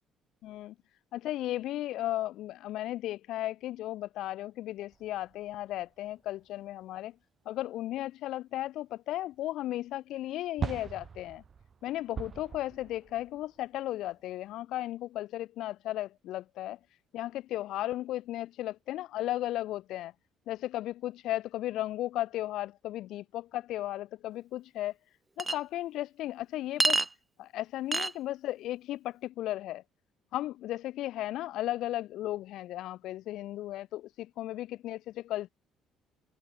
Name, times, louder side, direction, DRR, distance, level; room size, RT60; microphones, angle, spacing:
voice 1, 0.4-0.7 1.1-7.1 7.4-11.4 11.8-16.8 17.1-20.1 20.5-24.9 25.4-27.0 27.4-29.8 30.3-35.5, left 14 dB, 70° left, 1.4 m, -35 dB
sound 1, 4.9-6.5 6.8-6.9 9.2-9.3 10.6-14.5, right 6 dB, 45° right, 6.5 m, -41 dB
Chink clink, 25.4-25.6 26.8-27.1 27.9-28.1, right 3 dB, 20° right, 0.4 m, -26 dB
supercardioid pair, 65°, 0 cm